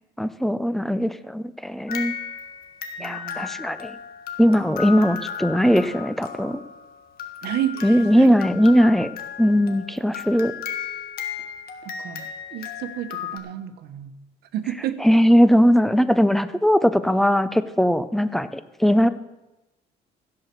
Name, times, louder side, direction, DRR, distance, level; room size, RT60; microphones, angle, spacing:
voice 1, 0.2-2.1 3.0-4.0 4.4-6.6 7.8-9.1 9.4-10.5 15.0-19.1, equal, ahead, 13 dB, 0.5 m, -19 dB
sound 1, 1.9-13.4, left 8 dB, 65° left, 1.5 m, -35 dB
voice 2, 3.0-3.5 7.4-8.3 11.8-12.2 12.5-14.2 14.5-15.0, right 11 dB, 75° right, 11 dB, 1.0 m, -30 dB
16.0 x 5.7 x 6.8 m, 1.0 s
cardioid pair, 110°, 17 cm